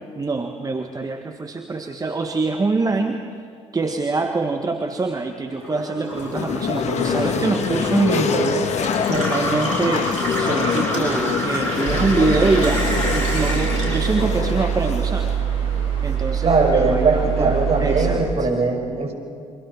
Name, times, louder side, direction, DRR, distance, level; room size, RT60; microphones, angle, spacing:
voice 1, 0.1-3.2 3.7-15.4 16.0-18.5, right 3 dB, 25° right, 6 dB, 1.6 m, -24 dB
Gurgling / Water tap faucet / Sink (filling or washing), 5.5-15.0 15.3-16.2, equal, 85° left, 7.3 m, -28 dB
sound 1, 6.2-16.2, left 6 dB, 45° left, 1.8 m, -25 dB
sound 2, 11.8-18.2, right 8 dB, 70° right, 5.0 m, -24 dB
voice 2, 16.4-19.1, right 3 dB, 40° right, 4 dB, 5.3 m, -20 dB
29.5 x 24.5 x 6.1 m, 2.3 s
figure-of-eight pair, 55°, 16 cm